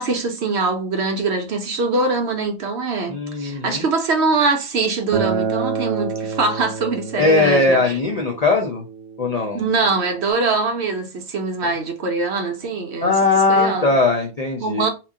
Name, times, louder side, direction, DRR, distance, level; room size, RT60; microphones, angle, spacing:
voice 1, 0.0-8.0 9.5-13.2 13.5-13.9 14.6-14.9, right 3 dB, 60° right, 0.9 m, -23 dB
voice 2, 3.1-3.8 7.2-8.8 9.2-9.6 13.0-14.8, left 3 dB, 55° left, 0.4 m, -19 dB
Acoustic guitar, 5.1-10.3, right 6 dB, 80° right, 1.0 m, -28 dB
2.9 x 2.5 x 3.5 m
omnidirectional pair, 1.4 m